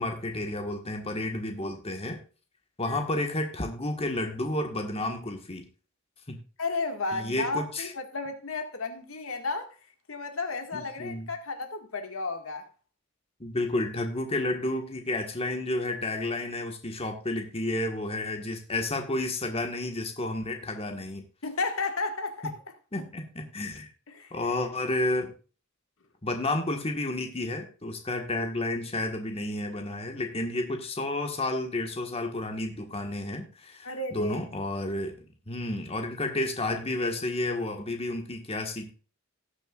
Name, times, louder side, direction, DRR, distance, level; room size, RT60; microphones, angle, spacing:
voice 1, 0.0-2.2 2.8-5.7 6.3-6.4 7.1-7.9 10.7-11.3 13.4-21.2 22.9-23.9 24.3-25.3 26.2-35.1 35.5-38.9, left 2 dB, 30° left, 1.6 m, -31 dB
voice 2, 6.6-9.7 10.1-12.6 21.4-22.6 24.1-24.3 33.8-34.4, left 3 dB, 80° left, 1.9 m, -33 dB
18.5 x 6.8 x 2.4 m
head